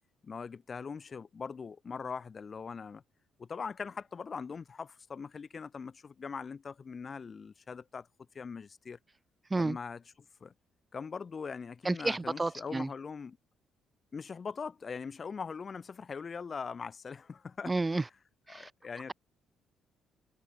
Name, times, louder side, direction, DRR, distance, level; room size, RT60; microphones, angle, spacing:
voice 1, 0.2-3.0 3.4-8.1 8.3-9.0 9.6-10.0 10.4-10.5 10.9-13.4 14.1-17.7 18.5-19.1, left 5 dB, 45° left, 2.5 m, -41 dB
voice 2, 11.8-12.9 17.6-18.0 18.5-18.7, right 3 dB, 25° right, 1.5 m, -31 dB
hypercardioid pair, 50°, 0 cm